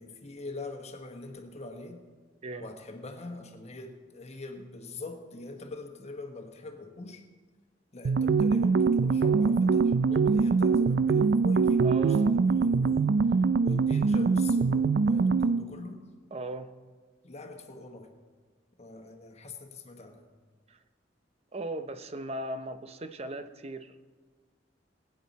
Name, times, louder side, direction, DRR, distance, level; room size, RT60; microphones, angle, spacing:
voice 1, 0.0-2.1 2.6-7.2 7.9-16.0 17.2-18.1 18.8-20.2, left 2 dB, 35° left, 4 dB, 1.2 m, -43 dB
sound 1, 8.0-15.7, right 4 dB, 65° right, 0.4 m, -23 dB
voice 2, 11.8-12.4 16.3-16.7 20.7-20.8 21.5-23.9, right 2 dB, 35° right, 9 dB, 0.7 m, -37 dB
20.0 x 9.4 x 4.1 m, 1.4 s
head